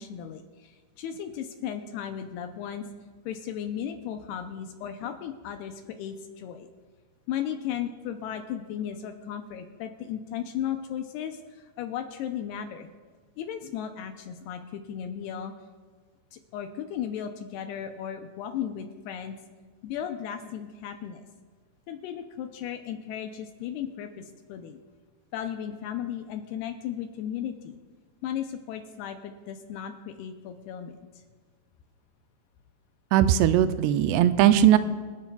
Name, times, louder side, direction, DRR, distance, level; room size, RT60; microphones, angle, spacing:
voice 1, 0.0-2.9 3.3-6.7 7.3-12.9 13.4-15.5 16.3-19.4 19.8-21.3 21.9-24.2 24.5-24.8 25.3-27.8 28.2-31.0, left 9 dB, 80° left, 6 dB, 2.5 m, -35 dB
voice 2, 33.1-34.8, right 11 dB, 85° right, 11 dB, 2.6 m, -19 dB
26.5 x 10.5 x 2.3 m, 1.5 s
omnidirectional pair, 4.9 m